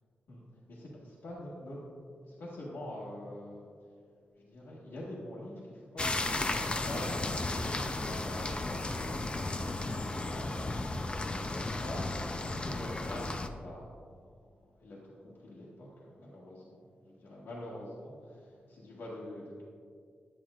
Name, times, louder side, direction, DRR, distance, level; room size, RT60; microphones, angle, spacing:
voice 1, 0.7-1.8 2.3-3.7 4.4-10.8 11.0-12.4 12.6-14.2 14.8-19.6, left 1 dB, 80° left, -6 dB, 1.6 m, -45 dB
sound 1, 6.0-13.5, left 2 dB, 30° left, 0.5 m, -34 dB
10.0 x 8.8 x 2.5 m, 2.2 s
wide cardioid pair, 90°, 4 cm